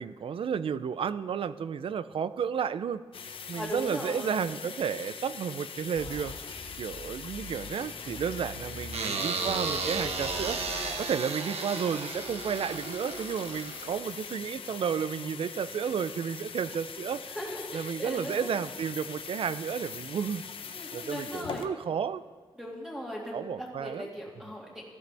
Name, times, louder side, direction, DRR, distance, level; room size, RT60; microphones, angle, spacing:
voice 1, 0.0-3.0 3.5-6.3 6.8-17.2 17.7-20.4 20.9-22.2 23.3-24.1, right 7 dB, 60° right, 15 dB, 0.4 m, -32 dB
sound 1, 3.1-21.7, left 6 dB, 60° left, 0.7 m, -42 dB
voice 2, 3.5-4.5 17.3-18.6 20.7-21.7 22.6-24.8, equal, 5° right, -4 dB, 2.2 m, -39 dB
sound 2, 5.9-10.9, left 2 dB, 80° left, 2.8 m, -44 dB
sound 3, 8.9-14.2, right 4 dB, 85° right, 1.2 m, -34 dB
17.0 x 14.0 x 3.4 m, 1.6 s
wide cardioid pair, 175°, 10 cm